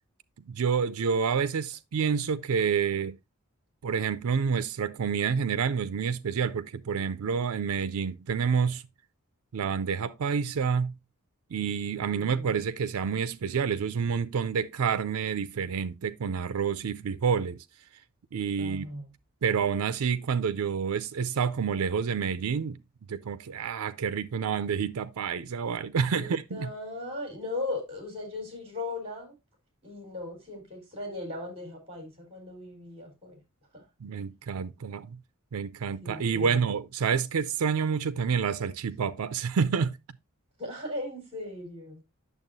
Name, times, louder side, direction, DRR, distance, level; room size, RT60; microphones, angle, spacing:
voice 1, 0.5-3.2 3.8-8.8 9.5-10.9 11.5-17.6 18.3-18.9 19.4-22.8 23.1-26.7 34.0-35.2 35.5-40.0, right 6 dB, 80° right, 0.4 m, -28 dB
voice 2, 12.0-12.6 18.6-19.0 26.2-29.3 29.8-33.4 33.7-33.8 36.0-36.7 40.6-42.0, left 2 dB, 25° right, 3.8 m, -38 dB
8.9 x 6.8 x 2.6 m
head